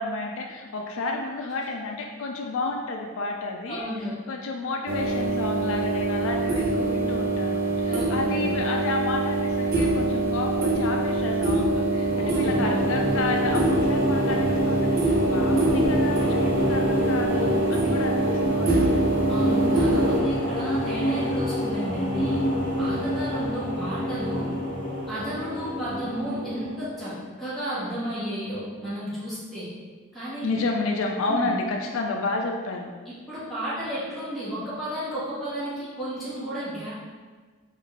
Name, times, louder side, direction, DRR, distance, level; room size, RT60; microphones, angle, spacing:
voice 1, 0.0-3.9 4.3-19.0 30.4-32.9, left 3 dB, 70° left, 2 dB, 0.4 m, -31 dB
voice 2, 3.7-4.2 7.9-8.4 12.1-12.8 19.3-22.4 22.8-24.5 25.1-29.7 30.1-30.5 31.3-31.5 33.0-36.9, equal, ahead, -11 dB, 1.3 m, -33 dB
sound 1, 4.9-20.2, right 2 dB, 45° right, 0.5 m, -24 dB
sound 2, 11.9-27.2, left 1 dB, 40° left, 0.7 m, -27 dB
3.7 x 2.6 x 3.5 m, 1.4 s
head